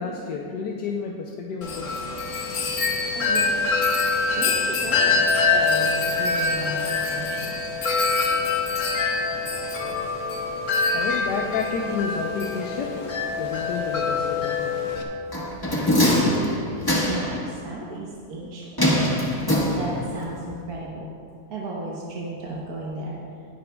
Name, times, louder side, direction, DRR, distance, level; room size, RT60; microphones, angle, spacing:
voice 1, 0.0-2.0 10.9-12.9 13.4-14.7, left 5 dB, 85° left, 0 dB, 1.3 m, -30 dB
Wind chime, 1.6-15.0, left 4 dB, 55° left, 1.4 m, -24 dB
voice 2, 3.1-3.6 4.3-5.2 5.5-7.6 17.1-18.8 19.7-21.1 21.5-23.2, right 2 dB, 65° right, -4 dB, 1.6 m, -34 dB
sound 1, 15.3-17.4 18.8-20.2 20.5-20.6, left 1 dB, 15° left, 1.4 m, -22 dB
19.5 x 8.9 x 2.3 m, 2.4 s
omnidirectional pair, 1.8 m